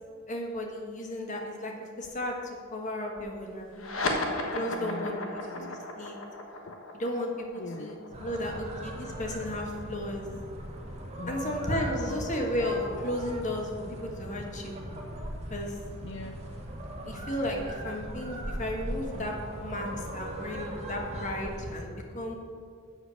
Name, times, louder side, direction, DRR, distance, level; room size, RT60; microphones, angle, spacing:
voice 1, 0.3-1.7 2.0-5.2 6.0-6.2 7.0-8.0 8.2-10.2 11.3-14.8 15.5-15.8 17.0-19.3 19.6-22.4, left 1 dB, 35° left, 1 dB, 1.4 m, -34 dB
sound 1, 3.7-10.6, left 2 dB, 75° left, 1.3 m, -35 dB
voice 2, 4.6-5.8 6.7-6.8 7.6-8.1 11.2-12.2 16.0-16.4, left 1 dB, 60° left, 5 dB, 0.5 m, -43 dB
sound 2, 8.1-21.8, right 1 dB, 30° right, 1.2 m, -39 dB
8.1 x 6.8 x 6.9 m, 2.2 s
head